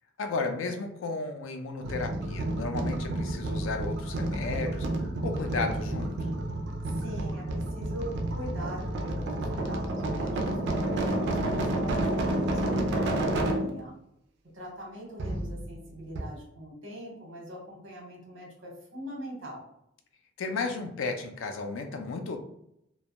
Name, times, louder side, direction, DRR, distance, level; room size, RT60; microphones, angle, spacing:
voice 1, 0.2-4.9 5.2-6.3 20.4-22.4, left 3 dB, 85° left, 6 dB, 0.4 m, -33 dB
sound 1, 1.8-13.8 15.2-15.9 16.2-16.3, right 1 dB, 60° right, 0.4 m, -30 dB
voice 2, 6.8-13.9 14.5-19.7, equal, 85° right, -2 dB, 1.0 m, -42 dB
2.2 x 2.1 x 2.8 m, 0.77 s
head